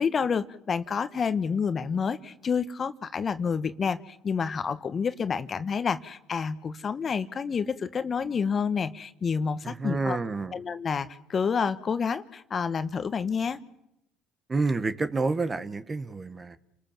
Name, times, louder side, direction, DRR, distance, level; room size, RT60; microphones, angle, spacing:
voice 1, 0.0-10.2 10.5-13.6, left 6 dB, 40° left, 1.3 m, -29 dB
voice 2, 9.6-10.6 14.5-16.6, right 3 dB, 25° right, 1.5 m, -29 dB
29.5 x 20.0 x 7.5 m
hypercardioid pair, 65°, 0 cm